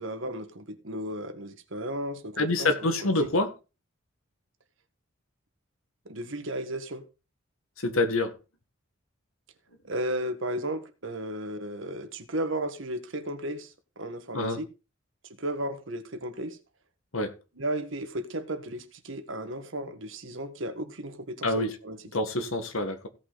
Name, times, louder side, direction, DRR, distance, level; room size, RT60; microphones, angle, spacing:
voice 1, 0.0-3.3 6.1-7.0 9.8-14.7 15.4-16.6 17.6-22.0, right 1 dB, 70° right, 1.6 m, -34 dB
voice 2, 2.4-3.5 7.8-8.3 14.3-14.6 17.1-17.3 21.4-21.7 22.1-23.1, left 2 dB, 85° left, 1.8 m, -26 dB
16.5 x 5.7 x 4.1 m
head